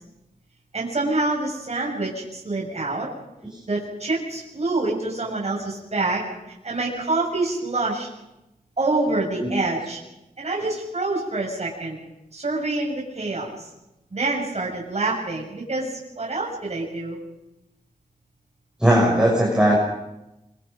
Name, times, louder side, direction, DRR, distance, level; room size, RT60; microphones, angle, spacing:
voice 1, 0.7-3.1 3.7-6.2 6.6-8.1 8.8-10.0 10.4-12.0 12.3-13.7 14.1-17.2, right 2 dB, 45° right, -3 dB, 6.4 m, -26 dB
voice 2, 18.8-19.7, right 1 dB, 5° right, -4 dB, 6.7 m, -18 dB
25.5 x 24.5 x 5.3 m, 0.92 s
wide cardioid pair, 80°, 15 cm